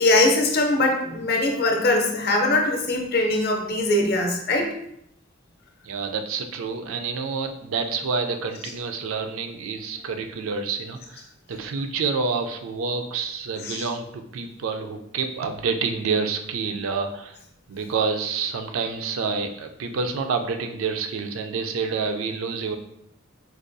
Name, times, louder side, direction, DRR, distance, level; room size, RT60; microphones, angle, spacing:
voice 1, 0.0-4.7 13.6-13.8, left 2 dB, 50° left, 2 dB, 0.6 m, -21 dB
voice 2, 5.8-17.4 17.7-22.8, right 5 dB, 70° right, 6 dB, 0.4 m, -28 dB
4.7 x 2.2 x 2.6 m, 0.76 s
head